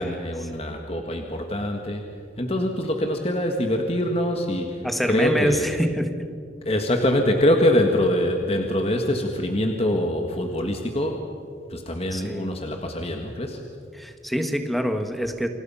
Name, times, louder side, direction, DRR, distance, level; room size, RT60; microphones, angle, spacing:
voice 1, 0.0-2.1 2.4-4.8 5.1-5.7 6.6-11.3 11.7-13.6, left 1 dB, 35° left, 3 dB, 1.7 m, -24 dB
voice 2, 4.8-6.3 12.1-12.5 13.9-15.5, equal, ahead, 6 dB, 1.6 m, -26 dB
29.0 x 26.0 x 5.7 m, 2.4 s
head